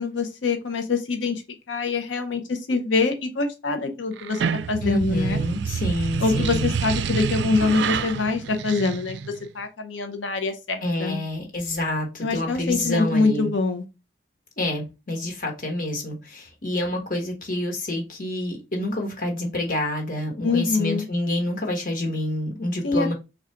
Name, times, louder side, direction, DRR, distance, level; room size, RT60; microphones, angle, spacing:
voice 1, 0.0-1.4 1.7-4.4 4.7-5.4 6.2-9.2 9.5-11.2 12.2-13.8 20.4-21.1 22.8-23.1, left 3 dB, 85° left, 0.6 m, -24 dB
sound 1, 4.2-9.5, right 7 dB, 70° right, 0.3 m, -28 dB
voice 2, 4.8-6.7 10.8-13.5 14.6-23.1, left 1 dB, 45° left, 1.1 m, -28 dB
3.7 x 2.3 x 4.3 m
head